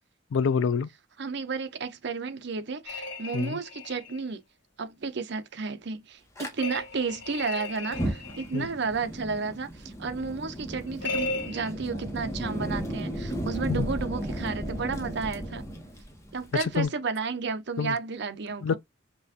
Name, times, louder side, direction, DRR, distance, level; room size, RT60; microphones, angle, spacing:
voice 1, 0.3-0.9 3.3-3.6 8.5-8.7 13.7-13.8 16.8-16.9 17.8-18.0 18.6-18.8, left 5 dB, 85° left, 0.4 m, -26 dB
voice 2, 1.2-4.4 4.8-6.2 6.5-15.7 16.3-18.8, right 4 dB, 65° right, 0.7 m, -32 dB
sound 1, 2.9-4.2 6.6-8.7 11.0-11.7, left 2 dB, 65° left, 1.6 m, -35 dB
Fire, 6.4-6.5 7.8-16.8, equal, 15° left, 1.0 m, -35 dB
5.4 x 2.5 x 2.7 m
head